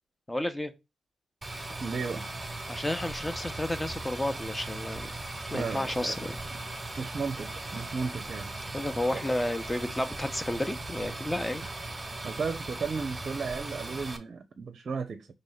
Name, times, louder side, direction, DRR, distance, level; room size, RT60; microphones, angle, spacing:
voice 1, 0.3-0.7 2.7-5.1 5.5-6.4 8.7-11.6, left 1 dB, 15° left, 1.0 m, -31 dB
sound 1, 1.4-14.2, right 2 dB, 25° right, 1.3 m, -38 dB
voice 2, 1.8-2.2 5.5-6.2 7.0-8.5 9.1-9.2 11.6-11.7 12.2-15.3, right 5 dB, 55° right, 0.6 m, -34 dB
4.1 x 3.3 x 3.9 m
hypercardioid pair, 40°, 0 cm